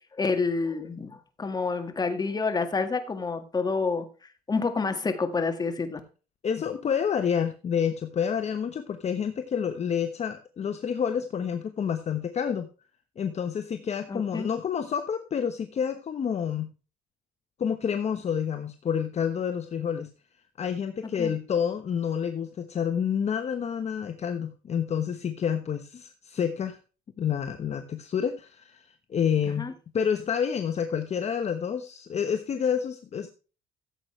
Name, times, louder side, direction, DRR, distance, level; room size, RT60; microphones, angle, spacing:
voice 1, 0.1-6.0 14.1-14.5 21.0-21.3 29.4-29.7, left 4 dB, 25° left, 7 dB, 1.8 m, -29 dB
voice 2, 6.4-12.7 13.2-16.7 17.6-20.1 20.6-26.8 27.2-29.6 29.9-33.3, left 7 dB, 40° left, 8 dB, 1.1 m, -28 dB
14.5 x 7.9 x 3.2 m, 0.35 s
cardioid pair, 110°, 17 cm